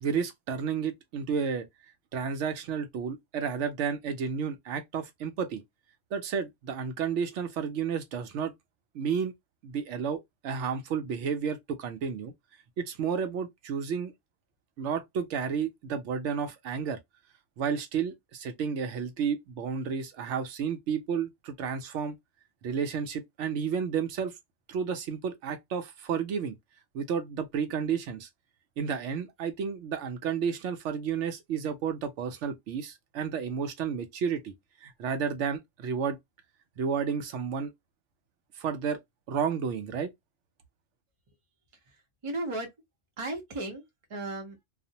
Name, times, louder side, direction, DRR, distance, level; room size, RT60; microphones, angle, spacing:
voice 1, 0.0-1.7 2.1-5.6 6.1-8.5 8.9-9.3 9.6-12.3 12.8-14.1 14.8-17.0 17.6-22.2 22.6-24.3 24.7-26.6 26.9-28.3 28.8-34.5 34.8-36.2 36.8-37.7 38.6-39.0 39.3-40.1, right 6 dB, 80° right, 0.9 m, -31 dB
voice 2, 41.8-42.7 43.2-43.8 44.1-44.6, right 2 dB, 35° right, 0.6 m, -35 dB
2.4 x 2.0 x 2.6 m
omnidirectional pair, 1.2 m